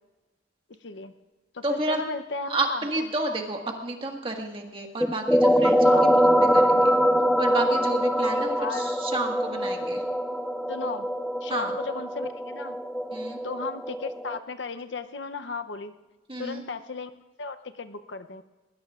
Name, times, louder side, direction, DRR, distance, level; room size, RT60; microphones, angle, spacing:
voice 1, 0.8-1.1 1.5-3.0 5.9-6.0 8.3-9.0 10.7-11.1 11.4-12.8 13.4-15.9 16.4-17.1 17.4-18.4, left 4 dB, 75° left, 10 dB, 0.7 m, -35 dB
voice 2, 1.6-2.0 2.5-6.1 6.4-6.9 7.4-10.0 11.5-11.7 13.1-13.4 16.3-16.6, right 2 dB, 30° right, 2 dB, 1.7 m, -31 dB
sound 1, 5.0-14.4, equal, ahead, 0.3 m, -23 dB
20.5 x 20.0 x 2.5 m, 1.2 s
head